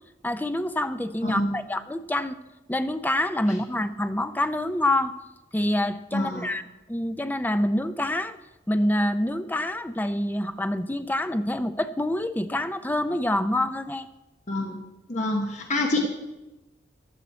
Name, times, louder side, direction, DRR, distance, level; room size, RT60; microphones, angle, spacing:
voice 1, 0.2-2.4 2.7-5.1 5.5-6.6 6.9-8.4 8.7-14.1, left 1 dB, 10° left, 11 dB, 0.5 m, -26 dB
voice 2, 1.2-1.6 6.1-6.5 14.5-14.8 15.1-16.1, left 1 dB, 40° left, 2 dB, 1.1 m, -26 dB
15.5 x 11.0 x 4.2 m, 1.0 s
head